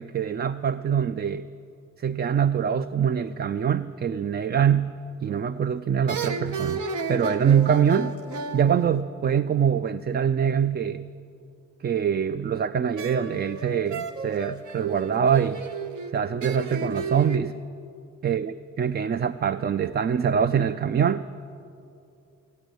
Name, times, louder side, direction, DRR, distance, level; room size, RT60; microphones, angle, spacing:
voice 1, 0.0-1.5 2.0-5.0 5.2-6.8 7.1-8.2 8.5-11.1 11.8-15.7 16.1-17.6 18.2-21.3, right 8 dB, 35° right, 12 dB, 0.4 m, -24 dB
sound 1, 5.3-5.7 6.1-9.7 13.0-17.4, right 4 dB, 70° right, 0.9 m, -34 dB
15.5 x 9.2 x 7.9 m, 2.6 s
cardioid pair, 65°, 31 cm